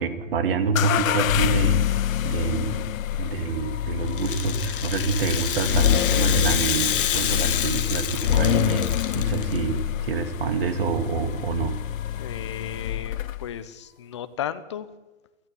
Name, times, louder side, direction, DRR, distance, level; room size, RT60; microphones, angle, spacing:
voice 1, 0.0-1.8 2.2-2.8 3.2-11.7, right 4 dB, 45° right, 8 dB, 2.6 m, -27 dB
sound 1, 0.8-13.6, left 11 dB, 85° left, 0.7 m, -26 dB
Rattle (instrument), 4.1-9.6, left 10 dB, 40° left, 1.5 m, -28 dB
voice 2, 12.1-14.9, left 10 dB, 20° left, 12 dB, 0.7 m, -35 dB
28.0 x 9.6 x 9.9 m, 1.1 s
hypercardioid pair, 175°, 39 cm